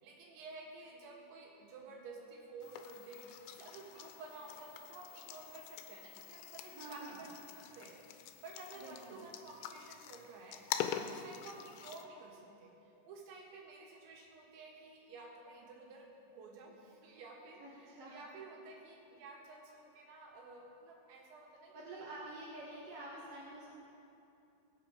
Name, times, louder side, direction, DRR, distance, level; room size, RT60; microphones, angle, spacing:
voice 1, 0.0-22.1, right 3 dB, 80° right, -1 dB, 4.2 m, -52 dB
sound 1, 2.6-12.0, left 10 dB, 90° left, 3.0 m, -45 dB
voice 2, 6.7-7.2 8.8-9.2 17.6-18.2 21.7-23.7, right 2 dB, 55° right, -6 dB, 1.8 m, -48 dB
22.5 x 8.0 x 5.0 m, 2.8 s
omnidirectional pair, 5.2 m